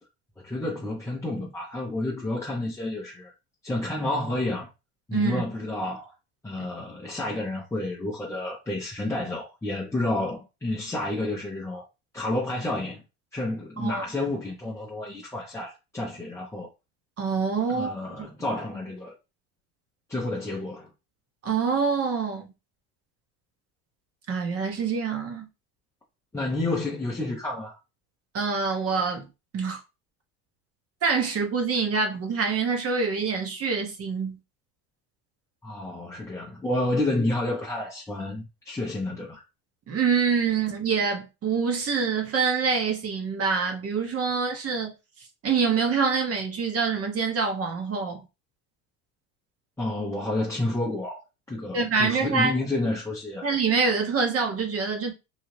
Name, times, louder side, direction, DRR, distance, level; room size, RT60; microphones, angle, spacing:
voice 1, 0.4-3.3 3.6-4.7 5.1-6.1 6.4-11.9 12.1-13.0 13.3-16.7 17.7-19.1 20.1-20.9 26.3-27.8 35.6-39.4 49.8-53.5, left 2 dB, 5° left, 0.6 m, -30 dB
voice 2, 5.1-5.4 13.8-14.0 17.2-18.3 21.4-22.5 24.3-25.5 28.3-29.3 29.5-29.8 31.0-34.4 39.9-44.9 45.4-48.2 51.7-52.5 53.4-55.1, right 5 dB, 30° right, 0.9 m, -25 dB
2.8 x 2.3 x 3.1 m
supercardioid pair, 105°, 47 cm